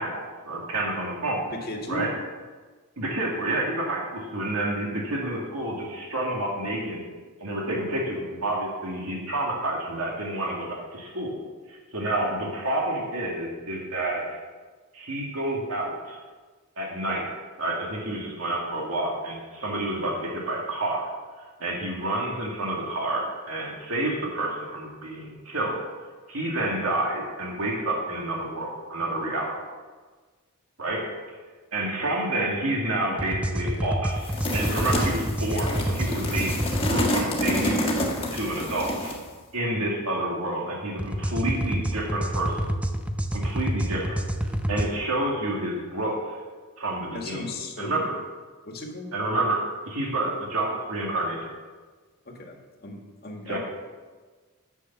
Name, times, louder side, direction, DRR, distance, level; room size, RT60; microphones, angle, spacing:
voice 1, 0.0-1.4 1.9-2.1 3.0-7.0 7.4-11.4 11.7-14.2 14.9-16.2 16.8-17.2 17.6-21.1 21.6-25.8 26.3-29.5 30.8-31.0 31.7-37.8 38.3-39.2 39.5-42.6 43.3-44.2 44.7-46.4 46.8-47.4 47.8-48.1 49.1-49.6 49.9-51.4 53.5-53.6, right 1 dB, 75° right, -2 dB, 2.1 m, -29 dB
voice 2, 1.5-2.1 47.1-48.2 48.7-49.2 52.3-53.6, left 1 dB, 45° left, 1 dB, 1.8 m, -36 dB
sound 1, 33.2-37.1 41.0-44.9, right 1 dB, 5° right, 0.5 m, -28 dB
sound 2, 34.2-39.3, left 1 dB, 25° left, 1.6 m, -28 dB
9.7 x 6.8 x 7.1 m, 1.4 s
head